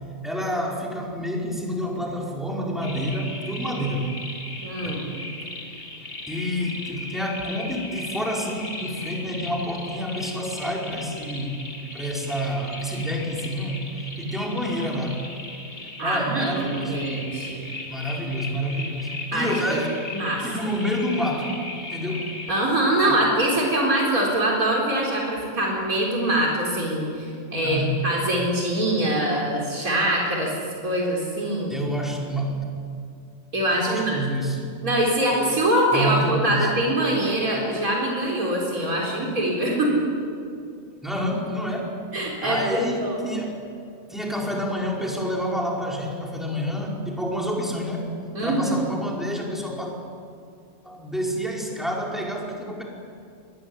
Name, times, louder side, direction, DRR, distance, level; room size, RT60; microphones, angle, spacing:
voice 1, 0.2-4.0 4.8-5.0 6.3-11.6 11.9-13.9 14.2-15.2 16.0-17.1 17.9-20.0 20.4-21.5 21.9-22.3 23.0-23.2 27.6-28.0 31.7-32.6 33.7-34.6 35.9-36.7 41.0-41.9 42.4-43.6 44.1-48.1 48.4-49.9 50.8-52.8, equal, ahead, -2 dB, 4.9 m, -28 dB
sound 1, 2.8-22.7, left 2 dB, 40° left, 2.9 m, -37 dB
voice 2, 4.6-5.0 16.0-17.7 19.3-19.8 20.1-20.4 22.5-30.5 30.8-31.7 33.5-34.1 34.8-40.0 42.1-43.3 48.3-48.8, right 1 dB, 90° right, -2 dB, 4.5 m, -23 dB
24.0 x 19.5 x 9.8 m, 2.4 s
omnidirectional pair, 1.5 m